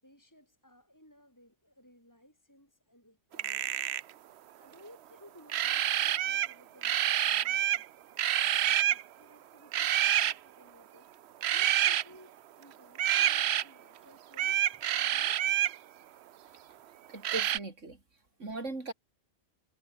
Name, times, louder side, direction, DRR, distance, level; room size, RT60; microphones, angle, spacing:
voice 1, 0.0-3.8 4.6-7.9 8.3-11.1 11.5-15.5 18.2-18.5, equal, 15° left, 7.0 m, -59 dB
sound 1, 3.3-4.1 5.5-6.5 6.8-7.9 8.2-9.0 9.7-10.3 11.4-12.0 13.0-13.6 14.3-15.8 17.2-17.6, right 11 dB, 65° right, 0.9 m, -27 dB
voice 2, 17.1-18.0 18.4-18.9, right 3 dB, 80° right, 4.2 m, -38 dB
omnidirectional pair, 1.2 m